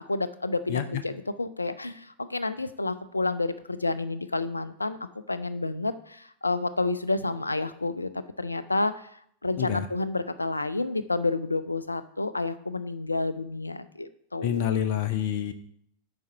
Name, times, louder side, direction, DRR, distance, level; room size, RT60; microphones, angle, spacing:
voice 1, 0.1-5.0 5.3-8.1 8.4-9.1 9.4-14.7, left 3 dB, 80° left, 13 dB, 0.4 m, -30 dB
voice 2, 14.4-15.5, left 9 dB, 45° left, 9 dB, 0.7 m, -27 dB
9.4 x 4.2 x 5.6 m, 0.68 s
figure-of-eight pair, 90°, 0 cm